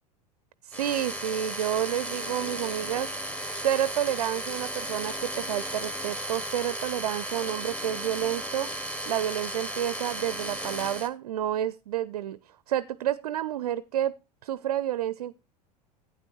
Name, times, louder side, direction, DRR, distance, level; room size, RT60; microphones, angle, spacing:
voice 1, 0.6-3.1 3.5-8.7 9.1-12.4 12.7-14.1 14.4-15.3, right 11 dB, 65° right, 18 dB, 0.5 m, -29 dB
sound 1, 0.7-11.1, right 1 dB, 5° left, 1.1 m, -35 dB
11.5 x 9.3 x 3.1 m, 0.30 s
figure-of-eight pair, 80°, 21 cm